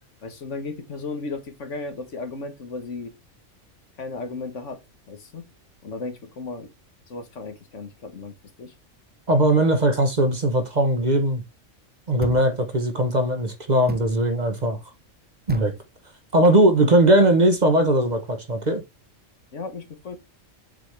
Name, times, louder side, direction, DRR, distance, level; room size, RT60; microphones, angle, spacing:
voice 1, 0.2-3.1 4.0-4.8 5.1-5.5 5.8-6.7 7.1-8.7 19.5-20.2, left 3 dB, 65° left, 1.6 m, -35 dB
voice 2, 9.3-11.4 12.1-14.8 15.5-15.7 16.3-18.8, right 1 dB, 35° right, 1.2 m, -19 dB
sound 1, 12.2-12.6 13.9-14.2 15.5-15.8, right 2 dB, 15° right, 0.3 m, -36 dB
7.6 x 4.6 x 3.4 m
omnidirectional pair, 1.3 m